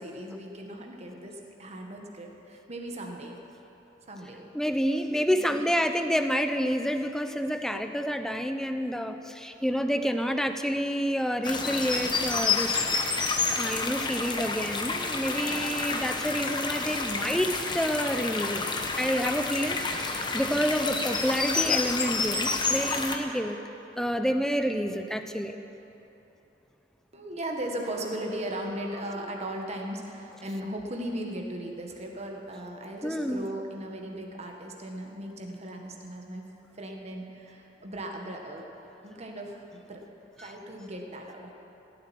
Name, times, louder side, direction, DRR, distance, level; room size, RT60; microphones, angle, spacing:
voice 1, 0.0-3.4 4.1-4.5 5.3-5.7 9.9-10.3 27.1-38.6 39.0-40.0 40.3-41.5, right 1 dB, 40° right, 1 dB, 1.6 m, -37 dB
voice 2, 4.5-12.9 13.5-18.6 18.9-23.6 24.0-25.6 33.0-33.5, equal, 5° left, 7 dB, 0.7 m, -28 dB
sound 1, 11.4-23.2, left 4 dB, 25° left, 1.1 m, -29 dB
17.0 x 7.8 x 9.7 m, 3.0 s
head